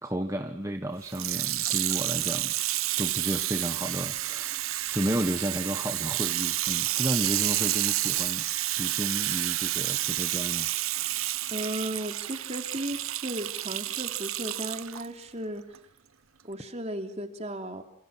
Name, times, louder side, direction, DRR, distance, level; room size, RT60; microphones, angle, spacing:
voice 1, 0.0-2.5 3.0-8.5 8.8-10.7, equal, 15° right, 5 dB, 1.4 m, -32 dB
Water tap faucet / Sink (filling or washing), 1.1-15.1 15.7-15.8, right 15 dB, 85° right, 1.0 m, -30 dB
voice 2, 11.5-15.6 16.4-17.8, right 1 dB, 30° right, 5 dB, 3.2 m, -35 dB
29.5 x 28.0 x 6.0 m, 0.67 s
head